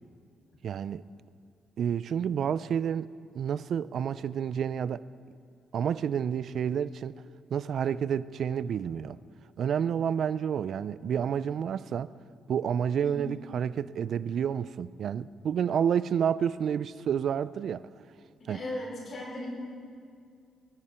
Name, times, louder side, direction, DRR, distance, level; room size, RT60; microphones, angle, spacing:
voice 1, 0.6-1.0 1.8-3.1 3.3-5.0 5.7-7.2 7.5-9.2 9.6-12.1 12.5-17.8 18.5-18.6, right 8 dB, 60° right, 0.4 m, -29 dB
voice 2, 18.5-19.5, left 1 dB, 50° left, 5.1 m, -37 dB
21.5 x 14.0 x 4.4 m
cardioid pair, 90°, 0 cm